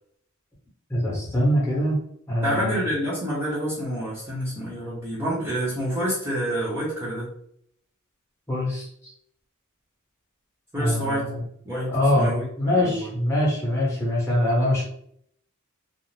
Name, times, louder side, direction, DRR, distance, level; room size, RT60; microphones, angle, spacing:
voice 1, 0.9-2.0 2.3-2.8 8.5-8.9 10.8-11.4 11.9-14.8, left 1 dB, 15° left, -5 dB, 1.0 m, -23 dB
voice 2, 2.4-7.3 10.7-11.3 11.6-13.1, equal, 10° right, -8 dB, 0.7 m, -28 dB
2.5 x 2.0 x 3.1 m, 0.67 s
head